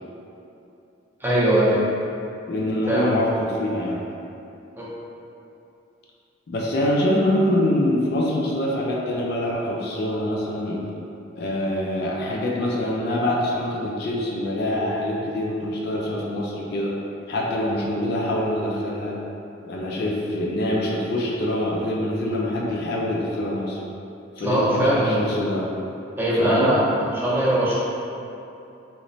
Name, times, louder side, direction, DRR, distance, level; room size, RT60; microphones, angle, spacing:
voice 1, 1.2-1.8 2.9-3.1 4.8-4.9 24.4-25.2 26.2-27.7, right 1 dB, 10° right, -8 dB, 0.5 m, -21 dB
voice 2, 2.5-4.0 6.5-10.8 11.4-17.0 17.3-19.2 19.6-23.8 24.4-25.7 26.3-26.7, left 1 dB, 50° left, -3 dB, 0.4 m, -25 dB
3.0 x 2.1 x 3.9 m, 2.8 s
head